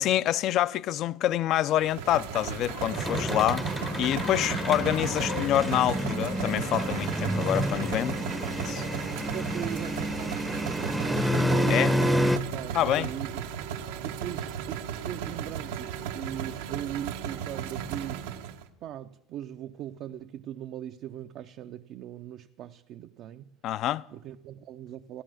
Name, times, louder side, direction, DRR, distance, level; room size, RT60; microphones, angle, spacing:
voice 1, 0.0-3.6 4.0-8.2 8.5-8.9 11.7-11.9 12.7-13.1 23.6-24.0, left 12 dB, 55° left, 0.4 m, -26 dB
sound 1, 1.8-18.7, right 9 dB, 85° right, 0.9 m, -36 dB
sound 2, 2.6-13.0 13.4-13.8 14.9-15.0, left 9 dB, 70° left, 1.4 m, -44 dB
sound 3, 2.8-12.4, equal, ahead, 0.6 m, -29 dB
voice 2, 3.2-3.8 4.5-4.9 9.3-13.5 14.0-18.5 18.8-23.4 24.1-25.2, right 11 dB, 55° right, 0.5 m, -40 dB
14.5 x 10.5 x 6.3 m
supercardioid pair, 105°, 0 cm